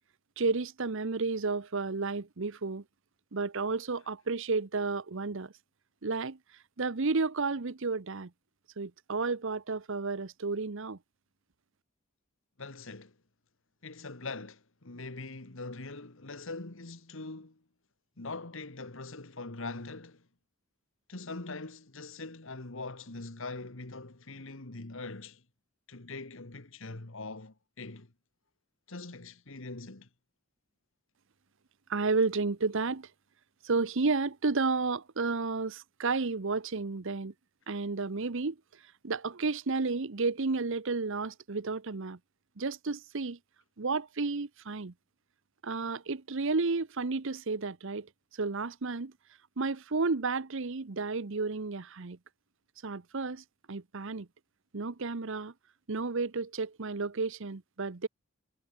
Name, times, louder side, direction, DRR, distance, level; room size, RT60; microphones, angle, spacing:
voice 1, 0.4-2.8 3.3-5.5 6.0-6.4 6.8-8.3 8.8-11.0 31.9-33.1 33.6-37.3 37.7-38.6 39.0-42.2 42.6-43.4 43.8-44.9 45.6-49.1 49.6-52.2 52.8-54.3 54.7-55.5 55.9-58.1, right 4 dB, 65° right, 0.9 m, -32 dB
voice 2, 12.6-13.2 13.8-17.6 18.2-20.2 21.1-25.4 25.9-28.1 28.9-30.1, left 3 dB, 70° left, 1.8 m, -42 dB
head